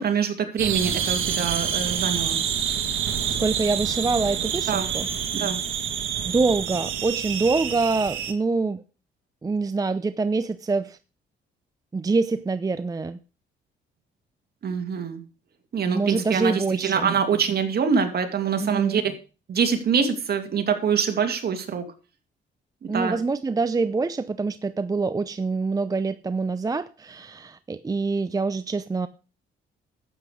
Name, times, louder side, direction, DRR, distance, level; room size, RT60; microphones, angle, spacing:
voice 1, 0.0-2.4 4.7-4.9 5.3-5.6 14.6-15.2 15.7-19.0 19.5-21.9 22.8-23.1, right 6 dB, 55° right, 6 dB, 2.3 m, -25 dB
sound 1, 0.6-8.3, right 8 dB, 75° right, 1.6 m, -27 dB
voice 2, 3.4-5.1 6.2-8.8 9.4-11.0 11.9-13.2 15.9-17.1 18.6-19.0 22.9-29.1, right 3 dB, 20° right, 13 dB, 0.5 m, -25 dB
11.5 x 8.3 x 5.1 m, 0.34 s
cardioid pair, 90°, 20 cm